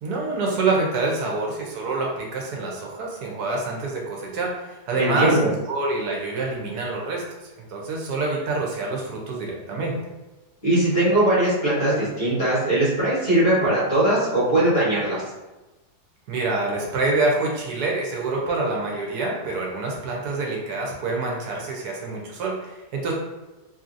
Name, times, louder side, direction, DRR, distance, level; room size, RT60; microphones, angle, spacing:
voice 1, 0.0-5.4 5.7-7.4 7.7-10.0 16.3-23.1, right 3 dB, 75° right, -1 dB, 1.2 m, -26 dB
voice 2, 4.9-5.5 10.6-15.2, right 1 dB, 40° left, -9 dB, 1.3 m, -20 dB
3.0 x 2.7 x 2.5 m, 1.1 s
omnidirectional pair, 1.7 m